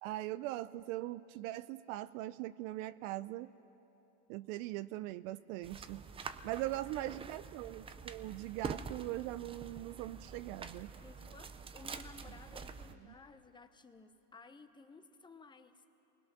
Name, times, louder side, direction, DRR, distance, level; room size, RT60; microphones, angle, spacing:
voice 1, 0.0-3.5 4.3-6.1 6.4-10.9, right 16 dB, 65° right, 15 dB, 0.6 m, -41 dB
sound 1, 5.6-12.9, right 5 dB, 15° right, 0.4 m, -46 dB
voice 2, 6.4-7.1 11.0-15.8, left 4 dB, 10° left, 9 dB, 0.8 m, -57 dB
27.5 x 20.5 x 6.1 m, 2.9 s
supercardioid pair, 140°, 43 cm